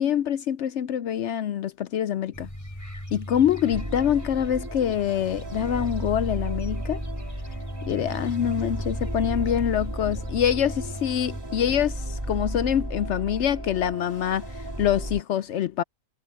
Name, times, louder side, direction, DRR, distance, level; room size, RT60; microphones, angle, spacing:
voice 1, 0.0-2.5 3.1-7.0 7.8-15.8, left 9 dB, 65° left, 0.8 m, -25 dB
sound 1, 2.3-11.4, equal, 10° left, 6.3 m, -37 dB
sound 2, 3.7-15.2, right 1 dB, 15° right, 2.7 m, -34 dB
omnidirectional pair, 1.4 m